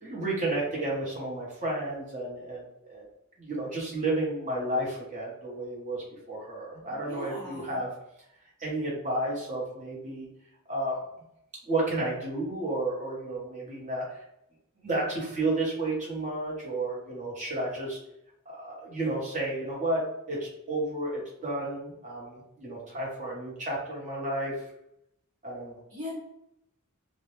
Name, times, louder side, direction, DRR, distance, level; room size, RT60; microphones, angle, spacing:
voice 1, 0.0-3.1 3.4-7.9 8.6-10.3 10.7-11.0 11.6-14.2 14.8-18.0 18.5-24.6 25.4-25.8, right 2 dB, 35° right, -4 dB, 0.8 m, -32 dB
voice 2, 6.9-7.8 25.9-26.1, equal, 85° right, -6 dB, 0.9 m, -40 dB
2.1 x 2.0 x 2.9 m, 0.79 s
head